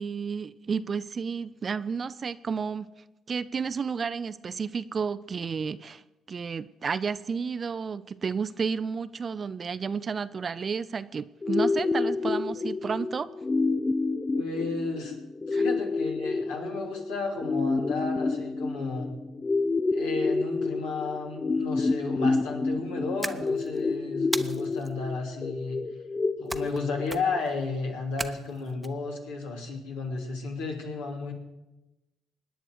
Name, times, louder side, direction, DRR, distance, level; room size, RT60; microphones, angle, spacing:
voice 1, 0.0-2.9 3.3-6.0 6.3-13.3 15.5-15.6, right 5 dB, 40° right, 14 dB, 0.6 m, -31 dB
sound 1, 11.4-27.4, left 3 dB, 30° left, 0.6 m, -29 dB
voice 2, 14.3-15.1 15.5-19.1 19.9-25.8 26.4-31.3, left 3 dB, 75° left, 0 dB, 3.0 m, -33 dB
sound 2, 23.2-23.8 24.3-24.9 26.5-26.8 27.1-27.5 28.2-28.9, right 1 dB, 5° right, 1.0 m, -35 dB
25.5 x 10.0 x 4.8 m, 1.0 s
hypercardioid pair, 50°, 0 cm